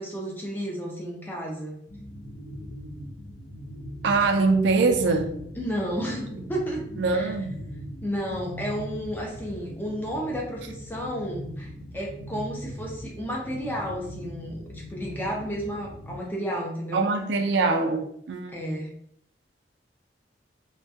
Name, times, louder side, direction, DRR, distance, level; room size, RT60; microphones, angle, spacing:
voice 1, 0.0-1.7 5.6-6.8 7.1-7.3 8.0-17.1 18.5-18.9, equal, 10° left, 0.4 m, -32 dB
sound 1, 1.9-16.2, equal, 75° left, 0.8 m, -40 dB
voice 2, 4.0-5.3 6.3-6.4 7.0-7.6 16.9-18.6, right 3 dB, 80° right, 0.4 m, -23 dB
2.2 x 2.1 x 2.7 m
head